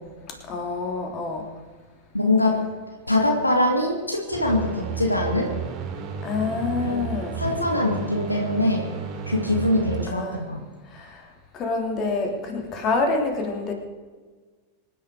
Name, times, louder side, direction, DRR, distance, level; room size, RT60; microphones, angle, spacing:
voice 1, 0.5-1.4 6.2-7.4 10.1-10.4 10.9-11.2 11.5-13.7, left 3 dB, 35° left, 3 dB, 3.2 m, -27 dB
voice 2, 2.1-2.6 3.1-5.5 6.8-6.9 7.4-8.8 9.3-10.6, left 1 dB, 85° left, 1 dB, 2.3 m, -23 dB
sound 1, 4.3-10.1, right 6 dB, 35° right, 3.2 m, -33 dB
25.5 x 10.5 x 4.7 m, 1.4 s
figure-of-eight pair, 90°, 0 cm